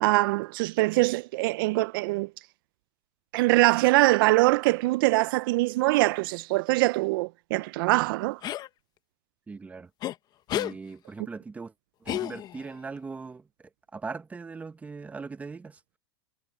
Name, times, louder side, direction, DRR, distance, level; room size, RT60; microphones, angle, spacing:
voice 1, 0.0-2.3 3.3-8.4, right 21 dB, 55° right, 0.4 m, -23 dB
sound 1, 8.4-8.7 10.0-10.1 10.5-10.7 12.1-12.7, left 13 dB, 30° left, 0.8 m, -31 dB
voice 2, 9.5-9.9 10.5-11.7 12.0-13.5 13.9-15.8, right 4 dB, 10° right, 1.0 m, -39 dB
supercardioid pair, 140°, 14 cm